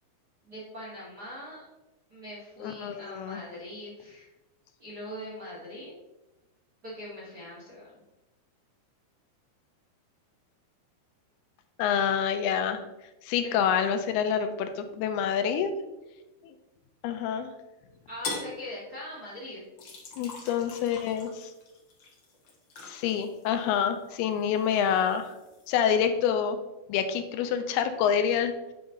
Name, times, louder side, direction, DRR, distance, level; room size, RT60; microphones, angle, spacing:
voice 1, 0.4-1.7 2.1-4.3 4.8-5.9 6.8-8.0 13.4-13.6 18.1-19.6, left 1 dB, 40° right, -6 dB, 1.5 m, -41 dB
voice 2, 2.6-3.4 11.8-12.8 13.2-15.7 16.4-16.5 17.0-17.5 20.2-21.5 22.8-25.3 25.7-26.6 26.9-28.5, left 8 dB, 85° left, 8 dB, 2.6 m, -27 dB
sound 1, 18.2-18.6 19.8-24.0 24.4-25.8, left 3 dB, 65° left, 1.1 m, -42 dB
8.8 x 5.5 x 3.8 m, 1.0 s
omnidirectional pair, 4.5 m